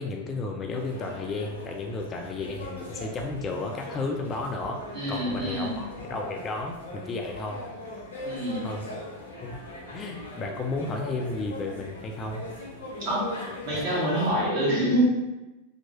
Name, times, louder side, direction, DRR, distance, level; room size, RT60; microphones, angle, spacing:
voice 1, 0.0-4.8 5.1-5.8 6.1-7.6 8.6-8.8 9.4-9.6 9.9-12.4 13.7-13.9, left 3 dB, 25° left, 1 dB, 0.3 m, -33 dB
sound 1, 0.7-14.5, left 1 dB, 70° left, 0.7 m, -40 dB
voice 2, 4.9-5.8 8.2-8.7 13.0-13.3 13.6-15.1, right 1 dB, 50° right, -7 dB, 1.3 m, -26 dB
2.7 x 2.2 x 2.9 m, 1.0 s
figure-of-eight pair, 90°, 0 cm